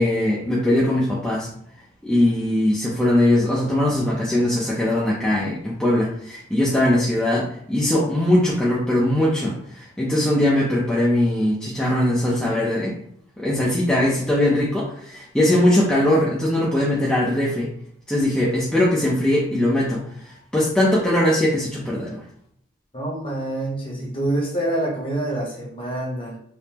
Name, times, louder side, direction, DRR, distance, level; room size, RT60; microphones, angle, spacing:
voice 1, 0.0-1.5 2.0-12.9 13.4-17.7 18.1-22.2, left 1 dB, 5° left, -6 dB, 0.4 m, -20 dB
voice 2, 22.9-26.4, right 1 dB, 25° left, -3 dB, 0.8 m, -26 dB
3.5 x 2.0 x 2.8 m, 0.66 s
head